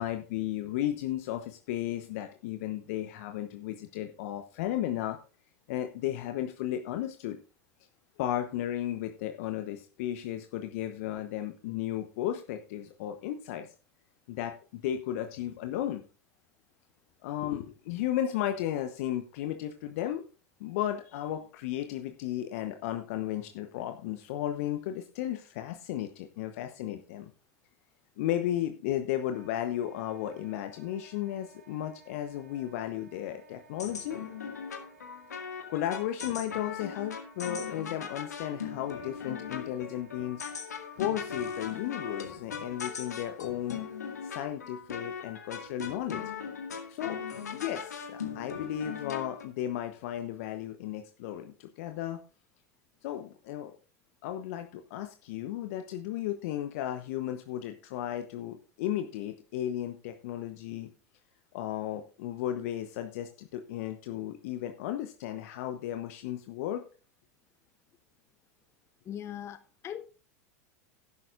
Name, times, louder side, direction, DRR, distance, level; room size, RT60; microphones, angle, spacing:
voice 1, 0.0-5.2 5.7-7.4 8.2-13.7 14.3-16.0 17.2-20.3 20.6-27.3 28.2-34.2 35.7-40.5 41.0-43.8 44.2-46.2 46.9-47.2 47.5-52.2 53.0-53.7 54.2-60.9 61.5-66.8, left 12 dB, 60° left, 1.0 m, -34 dB
Wind instrument woodwind instrument, 29.2-42.2, right 7 dB, 75° right, 5.0 m, -59 dB
sound 1, 33.8-49.5, left 6 dB, 80° left, 2.0 m, -39 dB
voice 2, 69.1-70.1, left 10 dB, 30° left, 0.7 m, -40 dB
12.0 x 11.0 x 2.5 m
figure-of-eight pair, 85°, 9 cm